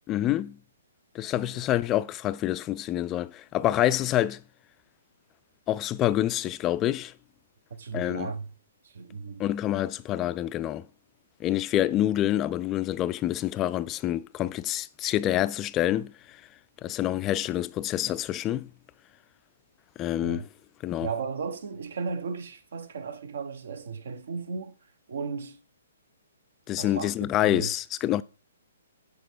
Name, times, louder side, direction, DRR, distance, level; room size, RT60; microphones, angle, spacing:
voice 1, 0.1-0.6 1.1-4.4 5.7-7.1 7.9-8.3 9.4-10.9 11.4-16.4 16.8-18.7 20.0-20.5 20.8-21.1 26.7-28.2, left 13 dB, 25° left, 0.3 m, -27 dB
voice 2, 7.8-8.5 8.8-9.4 20.2-20.4 21.0-24.7 25.1-25.6 26.8-27.1 27.4-27.7, right 5 dB, 60° right, 0.9 m, -35 dB
8.0 x 4.7 x 4.5 m
figure-of-eight pair, 125°, 0 cm